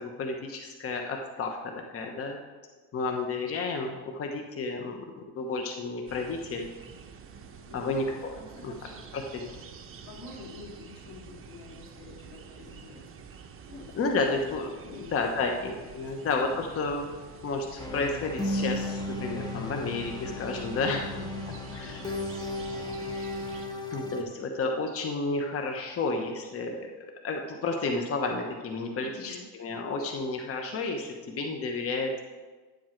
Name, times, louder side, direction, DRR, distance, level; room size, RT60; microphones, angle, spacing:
voice 1, 0.0-2.4 2.9-5.0 5.3-6.7 7.7-8.3 8.6-8.7 9.1-9.5 13.9-14.7 15.1-21.1 21.7-22.1 22.7-23.0 23.9-32.2, left 3 dB, 35° left, 3 dB, 1.1 m, -31 dB
sound 1, 6.1-23.7, right 6 dB, 35° right, 1.0 m, -48 dB
voice 2, 7.7-9.0 9.3-9.6 10.0-13.0 13.7-13.9 14.8-15.6 16.0-16.6 20.7-22.1 28.9-29.5, left 3 dB, 80° left, -2 dB, 3.0 m, -47 dB
sound 2, 17.8-24.2, left 1 dB, 10° left, 1.2 m, -34 dB
10.5 x 7.7 x 4.5 m, 1.3 s
cardioid pair, 115°, 38 cm